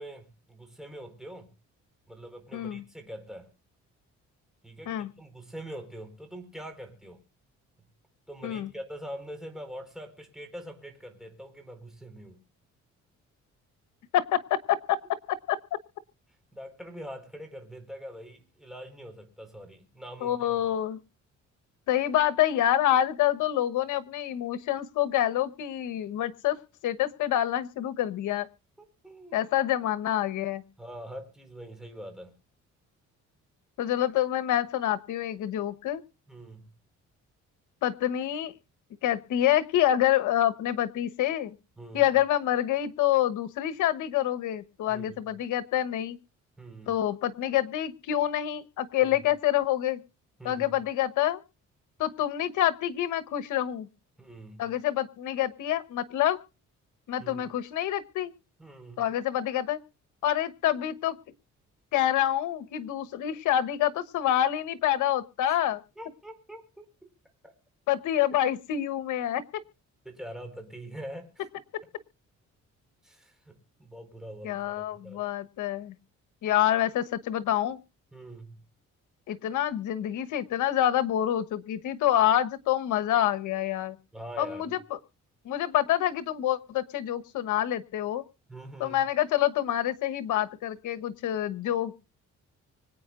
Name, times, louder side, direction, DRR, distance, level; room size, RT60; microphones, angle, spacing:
voice 1, 0.0-1.5 2.1-3.5 4.6-7.2 8.3-12.4 16.5-20.6 28.8-29.5 30.8-32.3 36.3-36.7 41.8-42.1 44.9-45.3 46.6-46.9 49.0-49.2 50.4-50.8 54.2-54.7 57.2-57.5 58.6-59.0 65.5-65.6 66.0-66.9 67.4-67.5 70.0-71.5 73.0-75.2 78.1-78.6 84.1-84.7 88.5-89.0, right 1 dB, ahead, 4 dB, 4.4 m, -44 dB
voice 2, 2.5-2.8 4.9-5.1 8.4-8.7 14.1-15.0 15.3-15.6 20.2-21.0 21.9-26.6 26.8-28.5 29.3-30.6 33.8-36.0 37.8-38.5 39.0-41.6 41.9-46.2 46.9-50.0 50.4-51.4 52.0-53.9 54.6-56.4 57.1-58.3 59.0-59.8 60.2-61.2 61.9-65.8 67.9-69.4 74.4-75.9 76.4-77.8 79.3-84.0 84.4-84.8 85.4-88.2 88.8-91.9, left 12 dB, 85° left, 11 dB, 1.2 m, -27 dB
25.0 x 9.0 x 2.5 m, 0.33 s
cardioid pair, 90°, 30 cm